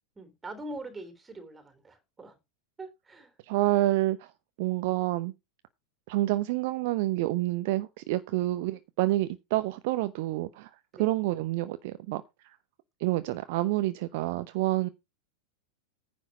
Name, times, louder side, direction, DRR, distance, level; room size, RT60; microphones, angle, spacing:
voice 1, 0.1-2.4 2.8-3.3 10.9-11.1, right 2 dB, 15° right, 3.4 m, -43 dB
voice 2, 3.4-4.3 4.6-5.3 6.1-10.7 11.0-12.6 13.0-14.9, right 17 dB, 50° right, 0.7 m, -28 dB
10.0 x 6.3 x 6.0 m
figure-of-eight pair, 90°, 0 cm